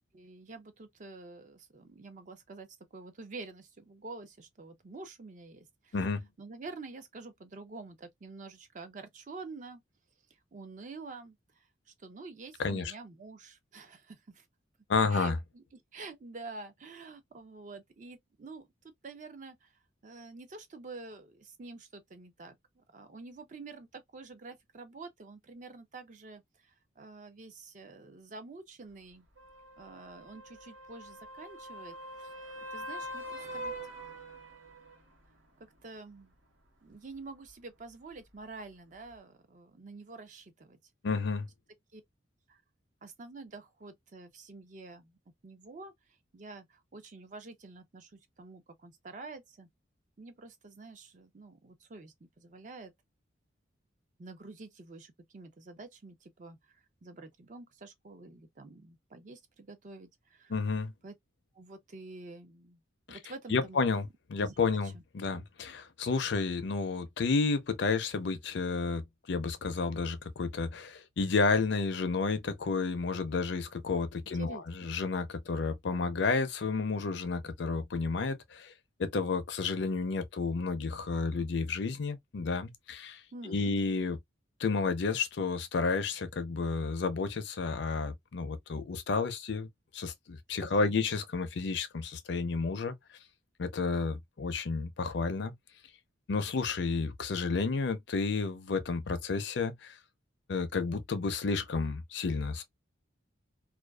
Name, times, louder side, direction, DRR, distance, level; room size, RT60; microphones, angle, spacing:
voice 1, 0.1-6.1 6.4-9.8 10.5-14.5 15.1-19.7 20.0-29.3 29.8-32.3 32.7-33.7 35.6-36.3 36.8-40.8 41.9-42.0 42.5-42.6 43.0-45.2 45.4-49.7 50.2-52.9 54.2-60.6 61.0-61.2 61.5-62.8 63.1-63.8 64.4-65.0 74.3-74.6 83.3-83.8 90.6-91.0, right 3 dB, 40° right, 0.4 m, -48 dB
voice 2, 5.9-6.3 12.6-12.9 14.9-15.4 41.0-41.5 60.5-60.9 63.1-63.2 63.5-78.7 79.0-84.2 84.6-89.7 89.9-92.9 93.6-95.5 96.3-100.0 100.5-102.6, left 4 dB, 60° left, 0.5 m, -31 dB
sound 1, 29.4-35.0 39.1-39.2, equal, 80° right, 1.0 m, -44 dB
2.4 x 2.3 x 2.2 m
head